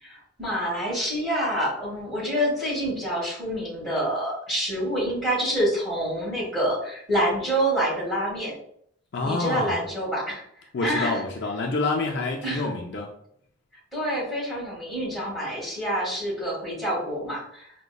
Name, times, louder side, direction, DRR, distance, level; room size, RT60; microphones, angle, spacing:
voice 1, 0.0-8.5 9.2-10.4 10.8-11.2 12.4-12.7 13.9-17.7, right 1 dB, ahead, -6 dB, 1.4 m, -27 dB
voice 2, 9.1-9.8 10.7-13.1, left 3 dB, 55° left, 1 dB, 0.4 m, -27 dB
4.9 x 2.1 x 2.3 m, 0.69 s
head